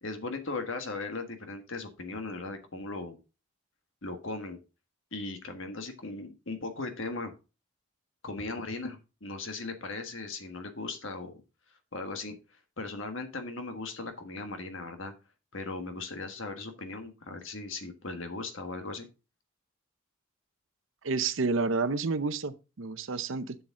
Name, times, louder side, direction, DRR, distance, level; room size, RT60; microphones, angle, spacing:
voice 1, 0.0-3.2 4.0-4.6 5.1-7.3 8.2-11.4 11.9-12.4 12.8-15.1 15.5-19.1, left 3 dB, 65° left, 1.5 m, -38 dB
voice 2, 21.0-23.6, right 4 dB, 65° right, 0.7 m, -30 dB
7.5 x 7.0 x 3.7 m
head